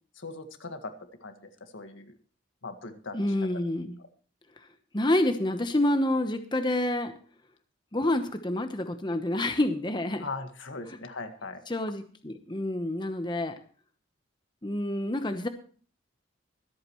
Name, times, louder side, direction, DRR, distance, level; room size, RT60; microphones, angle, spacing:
voice 1, 0.1-0.9 1.2-2.2 2.6-3.2 4.0-4.1 10.2-11.6, left 3 dB, 85° left, 7 dB, 1.7 m, -39 dB
voice 2, 3.1-4.0 4.9-7.1 7.9-10.3 11.7-13.5 14.6-15.5, left 1 dB, 25° left, 7 dB, 0.9 m, -28 dB
23.5 x 8.8 x 3.1 m, 0.43 s
head